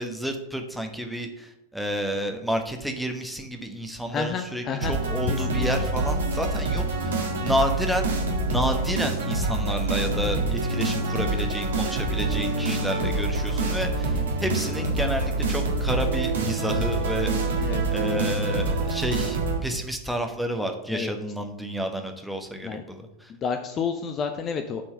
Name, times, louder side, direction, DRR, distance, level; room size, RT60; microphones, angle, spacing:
voice 1, 0.0-8.1 8.5-23.3, equal, ahead, 4 dB, 1.1 m, -30 dB
voice 2, 4.1-4.9 5.3-5.7 17.6-17.8 20.9-21.1 22.6-22.8 23.3-24.8, left 6 dB, 30° left, 7 dB, 0.7 m, -30 dB
sound 1, 4.8-19.6, right 2 dB, 60° right, 1.6 m, -26 dB
7.3 x 4.6 x 6.7 m, 0.88 s
figure-of-eight pair, 90°, 0 cm